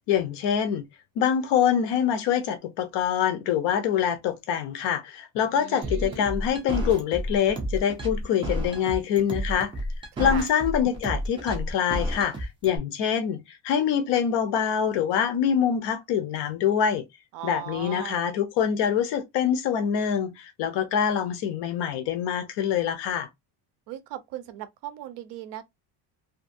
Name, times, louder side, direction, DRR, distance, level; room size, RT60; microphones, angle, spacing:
voice 1, 0.1-0.8 1.2-9.7 10.2-17.0 17.4-23.3, left 8 dB, 65° left, 0.7 m, -25 dB
voice 2, 5.5-6.3 10.1-10.5 17.3-18.2 23.9-25.6, right 12 dB, 65° right, 0.6 m, -38 dB
sound 1, 5.8-12.8, equal, 10° right, 0.4 m, -30 dB
2.6 x 2.5 x 2.5 m
cardioid pair, 165°, 47 cm